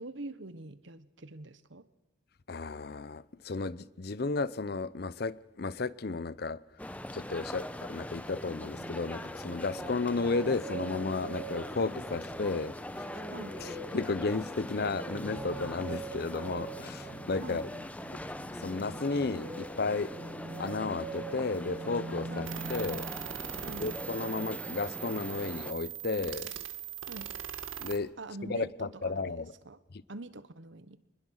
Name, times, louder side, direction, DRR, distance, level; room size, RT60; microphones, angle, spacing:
voice 1, 0.0-1.9 13.3-13.5 17.4-17.6 22.3-22.5 23.6-23.9 27.0-27.3 28.2-29.8 30.1-31.0, right 2 dB, 70° right, 1.2 m, -44 dB
voice 2, 2.5-6.6 7.1-13.1 13.9-17.7 18.1-18.2 18.6-20.1 20.6-23.1 23.8-26.5 27.8-28.1 28.4-29.5, left 3 dB, 50° left, 0.6 m, -33 dB
sound 1, 6.8-25.7, left 1 dB, 5° left, 0.8 m, -42 dB
sound 2, 8.5-24.8 25.2-25.9, right 3 dB, 45° right, 3.1 m, -45 dB
sound 3, 22.4-28.0, right 9 dB, 85° right, 1.6 m, -40 dB
24.5 x 20.5 x 6.5 m
head